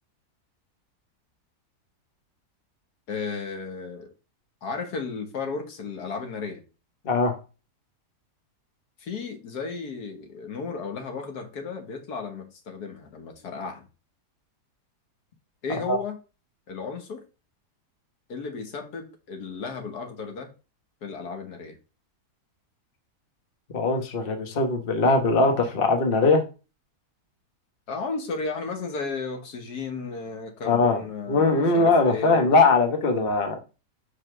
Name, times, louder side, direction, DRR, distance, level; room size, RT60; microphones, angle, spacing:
voice 1, 3.1-4.1 4.6-6.6 9.0-13.9 15.6-16.2 16.7-17.2 18.3-20.5 21.0-21.8 27.9-32.5, left 4 dB, 75° left, 5 dB, 1.7 m, -34 dB
voice 2, 23.7-26.4 30.7-31.0 31.3-33.6, left 3 dB, 40° left, 5 dB, 1.2 m, -21 dB
5.1 x 4.2 x 6.0 m, 0.32 s
omnidirectional pair, 1.7 m